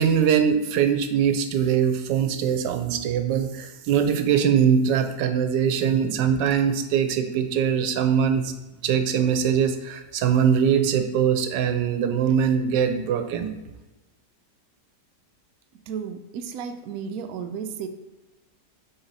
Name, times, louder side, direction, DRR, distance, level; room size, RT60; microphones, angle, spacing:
voice 1, 0.0-8.5 8.8-13.5, right 8 dB, 85° right, 8 dB, 1.3 m, -22 dB
voice 2, 15.9-17.9, right 7 dB, 70° right, 6 dB, 1.0 m, -33 dB
8.0 x 4.3 x 4.0 m, 1.1 s
omnidirectional pair, 1.9 m